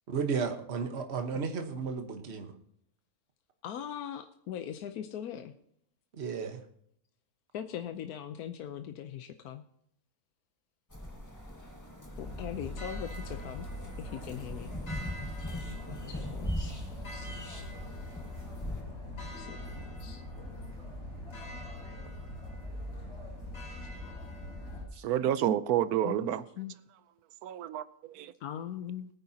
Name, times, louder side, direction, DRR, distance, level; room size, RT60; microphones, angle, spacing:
voice 1, 0.1-2.5 6.1-6.6, right 5 dB, 45° right, 1.4 m, -33 dB
voice 2, 3.6-5.5 7.5-9.6 12.2-13.7 14.0-14.7 15.9-16.7 17.1-17.5 19.1-20.2 24.9-25.0 26.0-26.7 28.4-29.1, left 9 dB, 85° left, 1.2 m, -41 dB
sound 1, 10.9-18.8, equal, 10° left, 1.7 m, -41 dB
sound 2, 12.2-24.8, left 1 dB, 45° left, 4.7 m, -42 dB
voice 3, 25.0-26.4 27.4-28.3, right 11 dB, 85° right, 1.2 m, -29 dB
21.0 x 9.7 x 2.8 m
omnidirectional pair, 1.6 m